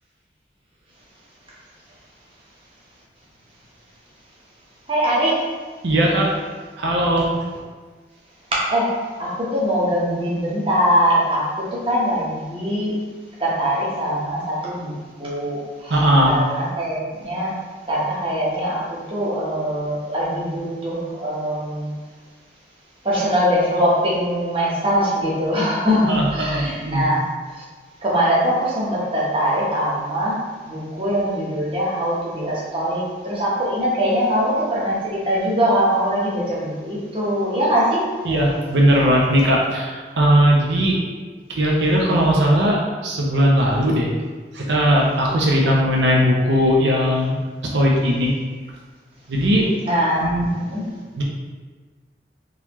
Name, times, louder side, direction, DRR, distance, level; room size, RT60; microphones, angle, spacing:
voice 1, 4.9-5.4 8.7-13.0 13.4-14.9 15.2-17.5 17.9-21.9 23.0-27.3 27.5-27.6 28.0-30.4 30.7-38.1 49.8-50.2 50.6-50.8, equal, 30° right, -7 dB, 1.0 m, -22 dB
voice 2, 5.8-6.3 6.8-7.3 15.9-16.3 26.1-27.1 38.2-41.0 41.5-44.1 44.5-47.4 47.6-48.3 49.3-49.7 50.2-50.5 51.2-51.3, equal, 85° right, -2 dB, 0.6 m, -18 dB
3.9 x 2.9 x 3.0 m, 1.4 s
head